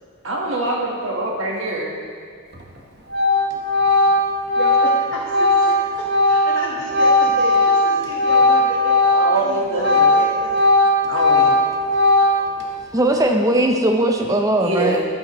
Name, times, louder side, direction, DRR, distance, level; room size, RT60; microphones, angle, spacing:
voice 1, 0.2-2.0 9.2-10.1 11.1-11.6 14.6-15.1, right 1 dB, 75° right, -1 dB, 1.3 m, -24 dB
Organ, 2.5-2.8 3.1-9.4 9.7-12.6, left 2 dB, 50° right, 1.0 m, -17 dB
voice 2, 4.6-10.7 11.9-12.0 12.3-12.6 13.2-13.3, left 1 dB, 60° left, -5 dB, 1.0 m, -32 dB
voice 3, 12.9-15.0, right 1 dB, 15° right, 3 dB, 0.5 m, -18 dB
11.5 x 7.6 x 3.0 m, 2.1 s
head